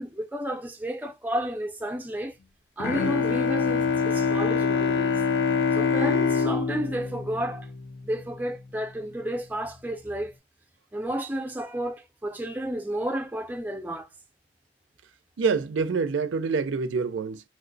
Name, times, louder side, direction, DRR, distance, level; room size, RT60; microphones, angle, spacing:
voice 1, 0.0-2.3 2.8-5.2 5.7-7.7 8.0-10.3 10.9-14.1, right 1 dB, 10° right, 0.4 m, -31 dB
Bowed string instrument, 2.8-8.4, left 5 dB, 80° left, 0.5 m, -25 dB
voice 2, 15.4-17.4, right 5 dB, 85° right, 0.4 m, -26 dB
3.0 x 2.1 x 3.8 m
head